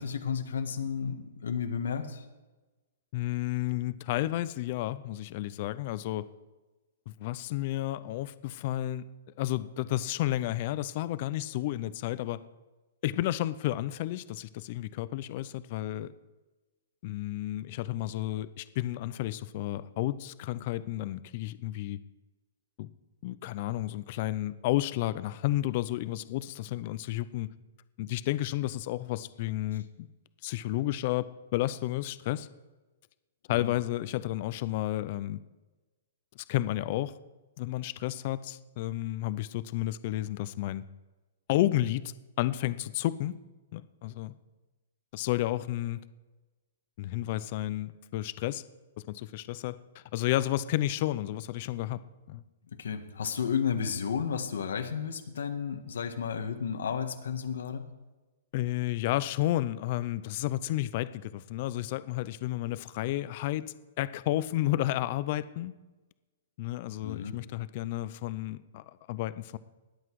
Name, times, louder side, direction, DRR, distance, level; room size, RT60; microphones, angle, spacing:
voice 1, 0.0-2.2 33.5-33.7 52.8-57.8 67.0-67.4, left 7 dB, 85° left, 7 dB, 1.6 m, -32 dB
voice 2, 3.1-6.3 7.1-9.0 9.4-12.4 13.0-16.1 17.0-22.0 22.8-22.9 23.2-27.5 28.0-30.1 30.4-32.5 33.5-35.4 36.4-37.1 37.6-40.8 41.5-42.0 42.4-43.4 43.7-44.4 45.1-46.0 47.0-48.6 49.0-49.8 50.1-52.0 52.3-52.4 58.5-63.7 64.0-65.8 66.6-69.6, left 15 dB, 35° left, 16 dB, 0.5 m, -31 dB
20.5 x 8.1 x 4.8 m, 1.2 s
hypercardioid pair, 165°, 0 cm